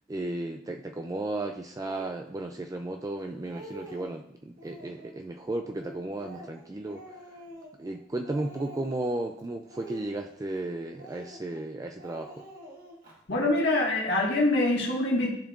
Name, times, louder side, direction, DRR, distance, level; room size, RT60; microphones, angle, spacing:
voice 1, 0.1-7.0 7.8-12.5, right 2 dB, 20° right, 4 dB, 0.3 m, -34 dB
Speech, 1.8-2.1 2.9-3.0 3.3-4.2 4.6-5.2 5.7-8.0 8.2-9.2 9.7-10.6 11.0-11.7 12.0-13.1, right 1 dB, 45° right, 2.0 m, -47 dB
voice 2, 13.3-15.3, left 2 dB, 65° left, -5 dB, 1.8 m, -24 dB
13.0 x 4.4 x 2.5 m, 0.69 s
head